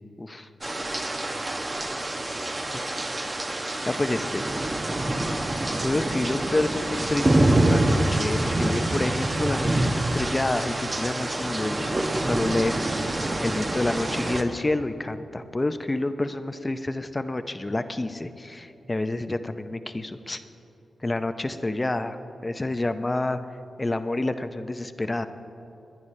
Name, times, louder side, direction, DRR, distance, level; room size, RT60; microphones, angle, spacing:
voice 1, 0.2-0.5 3.3-3.4 3.9-4.5 4.8-4.9 5.8-20.4 21.0-23.4 23.8-25.3, left 2 dB, 25° left, 10 dB, 0.6 m, -29 dB
sound 1, 0.6-14.4, right 1 dB, 35° right, 1.0 m, -26 dB
20.5 x 10.5 x 3.3 m, 2.9 s
cardioid pair, 65°, 0 cm